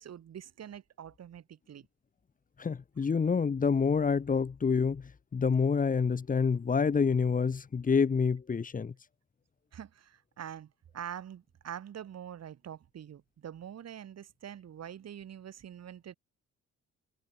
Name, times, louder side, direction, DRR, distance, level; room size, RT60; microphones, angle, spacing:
voice 1, 0.0-1.9 9.7-16.1, right 9 dB, 60° right, 2.6 m, -45 dB
voice 2, 2.6-8.9, left 5 dB, 25° left, 0.9 m, -27 dB
cardioid pair, 90°, 30 cm